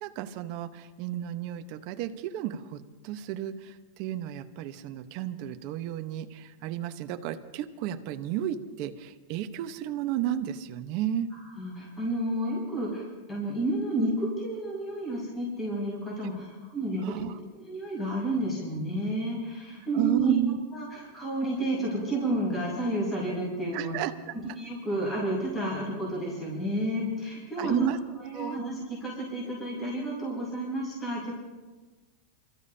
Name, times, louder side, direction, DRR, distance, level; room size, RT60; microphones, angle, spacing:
voice 1, 0.0-11.3 16.2-16.3 17.0-17.4 19.9-20.6 23.7-24.3 27.6-28.6, right 11 dB, 50° right, 8 dB, 1.0 m, -33 dB
voice 2, 11.6-17.2 17.6-20.3 20.7-24.0 24.6-27.9 28.2-31.3, right 1 dB, 20° left, -5 dB, 6.1 m, -31 dB
27.0 x 14.5 x 2.8 m, 1.3 s
supercardioid pair, 145°, 0 cm